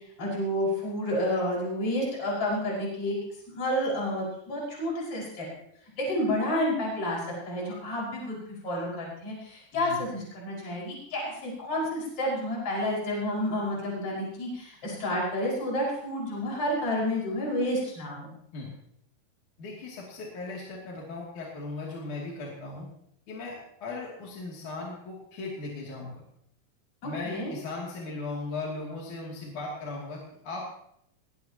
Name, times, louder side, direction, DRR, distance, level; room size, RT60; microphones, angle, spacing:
voice 1, 0.2-3.2 3.5-5.5 6.0-18.3 27.0-27.5, left 1 dB, 40° left, -4 dB, 6.3 m, -30 dB
voice 2, 19.6-22.9 23.3-26.2 27.0-30.6, left 3 dB, 55° left, -4 dB, 4.1 m, -37 dB
21.0 x 19.5 x 3.0 m, 0.74 s
omnidirectional pair, 4.3 m